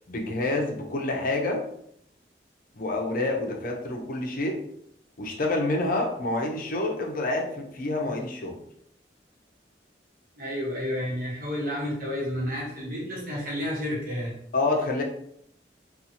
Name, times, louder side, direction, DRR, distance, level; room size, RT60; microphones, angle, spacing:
voice 1, 0.1-1.6 2.7-4.6 5.2-8.6 14.5-15.0, left 2 dB, 55° left, 1 dB, 0.5 m, -28 dB
voice 2, 10.4-14.3, left 1 dB, 55° right, -5 dB, 1.2 m, -31 dB
2.6 x 2.4 x 2.7 m, 0.71 s
head